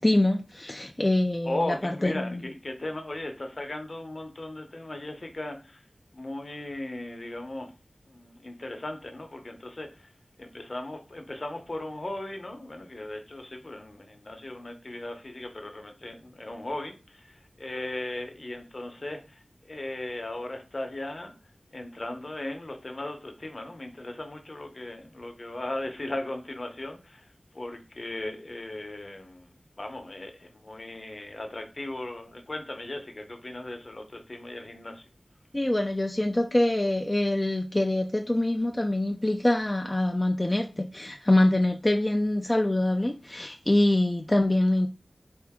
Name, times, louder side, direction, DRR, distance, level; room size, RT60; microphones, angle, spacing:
voice 1, 0.0-2.4 35.5-44.9, left 1 dB, 20° left, 0.4 m, -25 dB
voice 2, 1.4-5.9 6.1-7.7 8.1-10.1 10.4-21.3 21.7-35.0, left 1 dB, 50° left, 0.8 m, -37 dB
4.5 x 2.5 x 3.6 m
wide cardioid pair, 80°, 0 cm